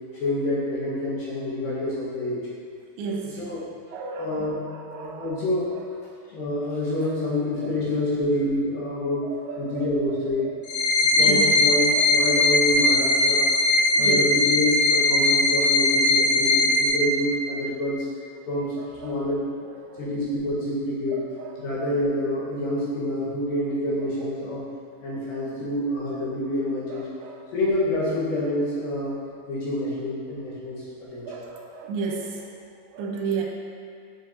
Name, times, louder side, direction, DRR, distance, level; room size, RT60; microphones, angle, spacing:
voice 1, 0.2-2.4 3.4-3.6 4.2-4.6 5.0-5.7 6.3-9.3 9.6-10.5 11.2-13.5 14.0-18.1 18.5-19.4 20.0-21.3 21.6-24.6 25.0-27.1 27.5-29.1 29.5-31.4, left 1 dB, 65° left, -8 dB, 2.8 m, -27 dB
voice 2, 3.0-3.4 3.9-5.4 7.6-7.7 9.2-10.6 11.1-11.6 11.9-12.3 13.9-14.3 18.8-19.2 19.6-20.1 21.1-21.6 24.2-24.3 26.9-27.5 31.3-32.5 32.9-33.4, right 4 dB, 80° right, -1 dB, 2.5 m, -34 dB
sound 1, 10.6-16.9, left 2 dB, 85° left, 1.6 m, -20 dB
7.7 x 5.5 x 2.8 m, 2.2 s
omnidirectional pair, 4.8 m